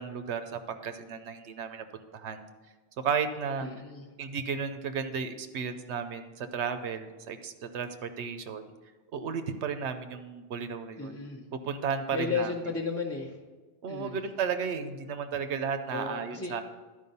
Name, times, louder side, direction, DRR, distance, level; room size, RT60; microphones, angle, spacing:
voice 1, 0.0-1.8 2.1-2.4 3.0-3.7 4.2-8.6 9.1-11.1 11.6-12.5 13.8-16.6, right 6 dB, 80° right, 8 dB, 1.0 m, -33 dB
voice 2, 3.6-4.1 11.0-11.5 12.1-13.4 13.9-14.3 15.9-16.5, left 4 dB, 15° left, 0 dB, 0.6 m, -34 dB
11.5 x 5.1 x 5.4 m, 1.3 s
omnidirectional pair, 1.2 m